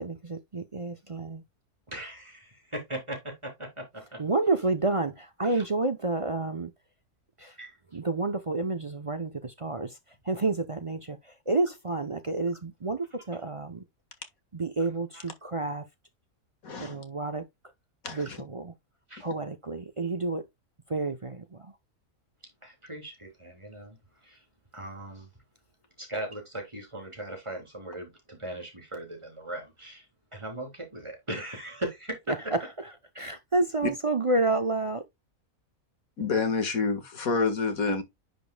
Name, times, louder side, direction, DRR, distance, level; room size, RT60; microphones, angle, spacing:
voice 1, 0.0-1.4 4.2-6.7 7.4-7.6 7.9-10.0 10.2-13.8 14.5-15.8 16.8-17.4 18.1-18.7 19.2-20.4 20.9-21.7 32.3-32.4 33.1-35.0, right 3 dB, 35° right, 0.5 m, -29 dB
voice 2, 1.9-4.2 5.4-5.6 7.6-7.8 15.1-15.2 19.1-19.2 20.0-20.1 22.6-24.0 24.2-24.4 24.7-25.3 26.0-30.0 30.3-32.5, right 1 dB, 20° right, 3.5 m, -39 dB
voice 3, 16.6-17.0 18.0-18.4 36.2-38.0, left 4 dB, 70° left, 2.1 m, -28 dB
10.5 x 5.2 x 2.2 m
omnidirectional pair, 1.6 m